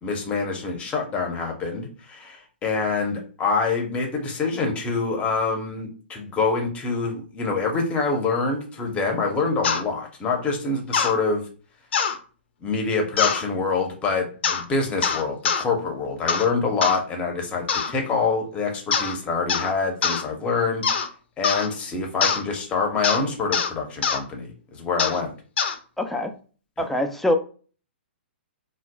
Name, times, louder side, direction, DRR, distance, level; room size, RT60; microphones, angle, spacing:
voice 1, 0.0-11.4 12.6-20.9 21.4-25.3 26.8-26.9, left 4 dB, 20° left, 2 dB, 0.8 m, -26 dB
sound 1, 9.6-9.8 10.9-11.1 11.9-12.2 13.2-13.4 14.4-14.6 15.0-15.6 16.3-16.5 16.8-17.0 17.7-17.9 18.9-19.2 19.5-19.7 20.0-20.2 20.8-21.1 21.4-21.7 22.2-22.4 23.0-23.2 23.5-23.7 24.0-24.2 25.0-25.2 25.6-25.8, left 6 dB, 65° left, 0.5 m, -23 dB
voice 2, 26.0-26.3 26.8-27.4, left 1 dB, 5° left, 4 dB, 0.3 m, -23 dB
4.0 x 2.3 x 2.3 m, 0.39 s
hypercardioid pair, 135°, 6 cm